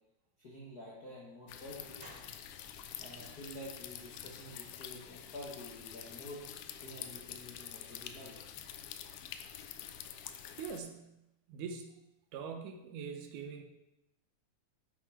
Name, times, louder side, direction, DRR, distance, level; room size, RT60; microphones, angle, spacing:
voice 1, 0.4-2.1 3.0-6.5 6.8-8.4, left 1 dB, 50° left, -5 dB, 1.1 m, -49 dB
sound 1, 1.3-1.4 2.0-3.8 4.1-4.2 4.6-4.7 5.0-5.1, right 1 dB, 60° right, 3.5 m, -58 dB
sound 2, 1.5-10.8, left 10 dB, 80° left, 2.1 m, -47 dB
voice 2, 10.6-11.1 11.5-12.0 12.3-13.6, right 6 dB, 75° right, 5 dB, 2.3 m, -43 dB
7.6 x 5.9 x 4.8 m, 0.93 s
omnidirectional pair, 3.6 m